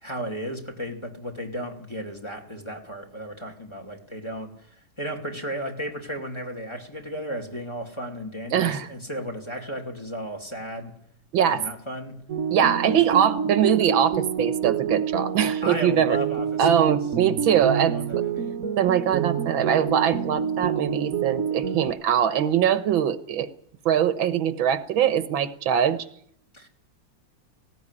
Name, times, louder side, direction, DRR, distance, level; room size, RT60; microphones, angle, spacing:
voice 1, 0.0-4.5 5.0-10.9 11.4-12.2 12.8-13.0 15.6-17.0 17.8-18.6 26.5-26.7, equal, 15° left, 3 dB, 2.6 m, -34 dB
voice 2, 8.5-8.9 11.3-11.6 12.5-16.2 16.6-17.9 18.8-23.5 23.9-26.1, right 9 dB, 85° right, 11 dB, 1.9 m, -22 dB
sound 1, 12.3-21.9, right 7 dB, 50° right, 1.4 m, -27 dB
18.5 x 16.5 x 9.9 m, 0.68 s
omnidirectional pair, 2.1 m